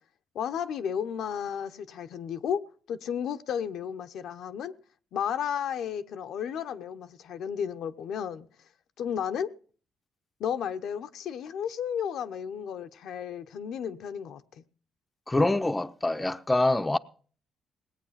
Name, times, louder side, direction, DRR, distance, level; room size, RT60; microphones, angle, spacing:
voice 1, 0.3-2.6 2.9-4.7 5.1-8.5 9.0-9.5 10.4-14.6, left 8 dB, 75° left, 0.8 m, -33 dB
voice 2, 15.3-17.0, left 2 dB, 15° left, 0.6 m, -25 dB
19.0 x 8.5 x 5.7 m
cardioid pair, 90°, 0 cm